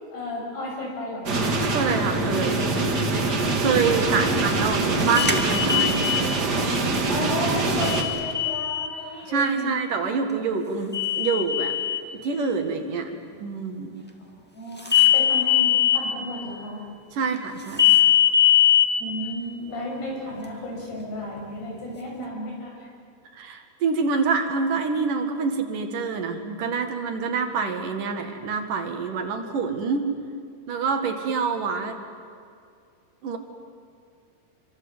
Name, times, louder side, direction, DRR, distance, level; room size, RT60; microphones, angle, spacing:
voice 1, 0.1-1.3 3.8-4.3 7.0-9.7 14.5-14.8 15.1-16.8 19.0-22.9, left 1 dB, 90° left, -1 dB, 8.9 m, -33 dB
sound 1, 1.3-8.0, right 3 dB, 35° right, 2.0 m, -24 dB
voice 2, 1.7-2.7 3.6-6.9 9.2-11.8 12.2-14.0 17.1-18.0 23.3-30.1 30.7-32.0 33.2-33.4, right 5 dB, 60° right, 5 dB, 3.4 m, -26 dB
sound 2, 5.1-6.2 7.8-8.9 10.9-12.0 14.8-16.0 17.8-18.8, left 11 dB, 10° left, 0.6 m, -20 dB
27.0 x 24.5 x 8.1 m, 2.4 s
omnidirectional pair, 4.5 m